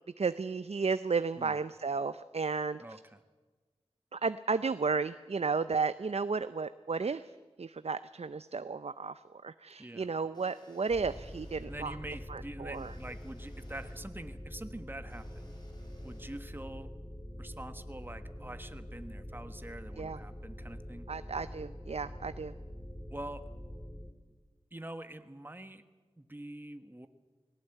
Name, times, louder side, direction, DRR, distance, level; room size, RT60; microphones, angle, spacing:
voice 1, 0.2-2.8 4.1-7.3 7.6-11.9 12.3-12.9 20.0-20.2 21.1-22.5, right 4 dB, 70° right, 13 dB, 0.5 m, -33 dB
voice 2, 2.8-3.2 9.8-10.1 11.7-15.5 16.0-16.9 17.4-21.1 23.1-23.5 24.7-25.8 26.2-27.1, right 1 dB, 20° right, 9 dB, 1.3 m, -45 dB
sound 1, 10.3-11.7 12.7-14.0 15.1-16.4, left 1 dB, 40° left, 6.3 m, -63 dB
sound 2, 10.9-24.1, equal, 10° left, 2.5 m, -45 dB
19.0 x 17.5 x 9.1 m, 1.3 s
wide cardioid pair, 45°, 11 cm